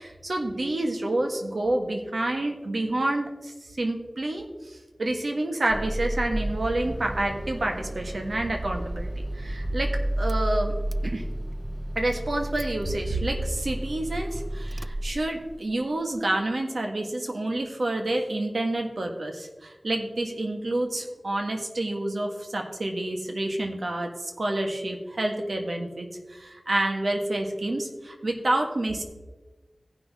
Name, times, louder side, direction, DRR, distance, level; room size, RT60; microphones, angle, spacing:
voice 1, 0.0-10.7 11.0-11.3 11.9-29.0, right 1 dB, 70° right, 3 dB, 1.5 m, -28 dB
Car / Engine starting, 5.7-15.8, right 1 dB, 20° right, 0.4 m, -31 dB
17.0 x 5.8 x 3.6 m, 1.2 s
wide cardioid pair, 65°, 0 cm